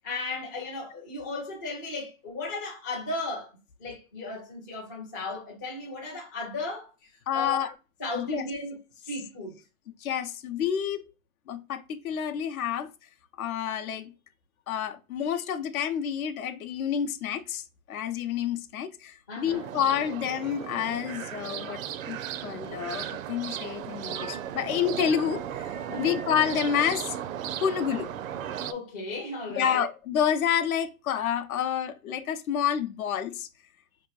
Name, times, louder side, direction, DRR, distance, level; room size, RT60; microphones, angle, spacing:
voice 1, 0.0-3.5 3.8-7.7 8.0-8.8 9.0-9.6 19.3-19.7 25.9-26.2 28.7-29.8, left 2 dB, 15° left, 0.3 m, -35 dB
voice 2, 7.3-7.7 8.2-8.5 10.0-11.1 11.5-12.9 13.4-14.1 14.7-21.8 22.1-27.2 27.6-28.1 29.6-33.5, left 9 dB, 75° left, 0.7 m, -29 dB
sound 1, 19.5-28.7, right 9 dB, 70° right, 0.5 m, -36 dB
4.7 x 2.8 x 2.3 m
hypercardioid pair, 150°, 43 cm